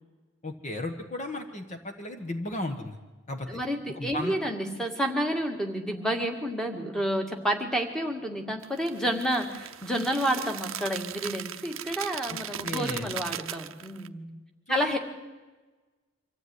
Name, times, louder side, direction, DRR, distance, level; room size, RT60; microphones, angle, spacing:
voice 1, 0.4-3.0 3.3-3.6 4.0-4.3 12.3-13.1 14.7-15.0, left 2 dB, 35° left, 5 dB, 1.4 m, -35 dB
voice 2, 3.5-14.3 14.7-15.0, equal, 5° left, 3 dB, 2.0 m, -30 dB
sound 1, 8.6-14.1, right 10 dB, 70° right, 0.7 m, -38 dB
25.0 x 14.5 x 9.7 m, 1.2 s
head